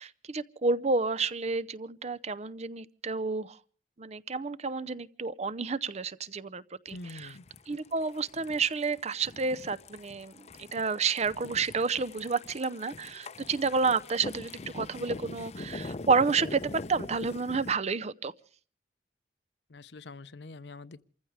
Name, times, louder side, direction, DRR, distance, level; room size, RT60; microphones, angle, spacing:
voice 1, 0.0-3.6 4.0-7.3 7.7-18.3, right 4 dB, 40° right, 0.7 m, -30 dB
voice 2, 6.9-7.4 19.7-21.0, left 2 dB, 75° left, 0.8 m, -45 dB
sound 1, 6.9-17.7, left 2 dB, 40° left, 0.7 m, -43 dB
28.5 x 15.0 x 3.3 m
head